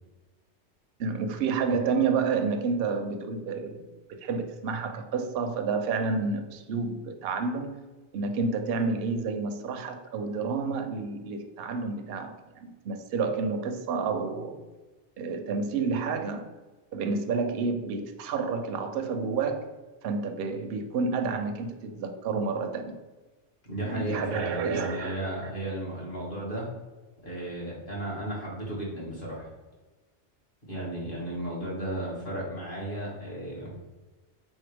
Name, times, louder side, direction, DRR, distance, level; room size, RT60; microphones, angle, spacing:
voice 1, 1.0-3.8 4.1-7.7 8.1-14.6 15.2-16.5 16.9-19.7 20.0-22.9 23.8-25.2, right 4 dB, 65° right, 7 dB, 0.7 m, -30 dB
voice 2, 23.7-26.7 27.2-29.5 30.7-33.7, right 1 dB, 50° left, -5 dB, 1.6 m, -34 dB
4.0 x 3.6 x 3.3 m, 1.2 s
omnidirectional pair, 1.2 m